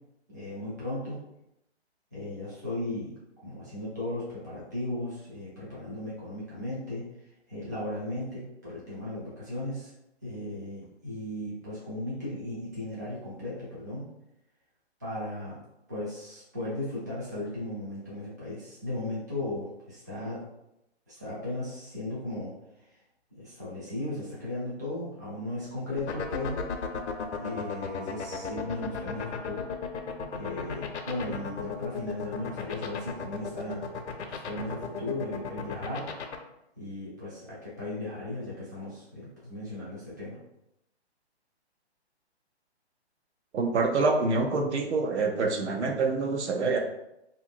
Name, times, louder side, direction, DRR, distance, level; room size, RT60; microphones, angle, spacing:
voice 1, 0.3-1.2 2.1-7.0 7.5-9.9 10.2-14.1 15.0-15.6 15.9-20.4 21.1-22.5 23.4-26.6 27.4-29.7 30.4-33.9 34.3-36.1 36.8-40.4, left 1 dB, 15° right, -9 dB, 0.4 m, -36 dB
sound 1, 26.0-36.4, left 6 dB, 85° left, 0.6 m, -34 dB
voice 2, 43.5-46.8, right 3 dB, 80° right, 3 dB, 0.7 m, -26 dB
2.9 x 2.5 x 2.5 m, 0.85 s
hypercardioid pair, 165°, 34 cm